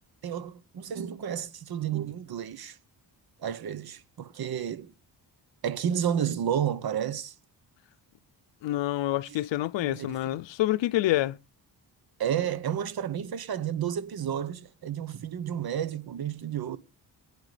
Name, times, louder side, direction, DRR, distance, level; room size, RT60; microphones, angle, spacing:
voice 1, 0.2-2.8 3.4-4.9 5.6-7.3 9.3-9.4 9.8-10.2 12.2-16.8, right 9 dB, 55° right, 0.9 m, -31 dB
voice 2, 8.6-11.4, left 15 dB, 90° left, 0.6 m, -27 dB
22.5 x 9.8 x 3.3 m
wide cardioid pair, 150°, 43 cm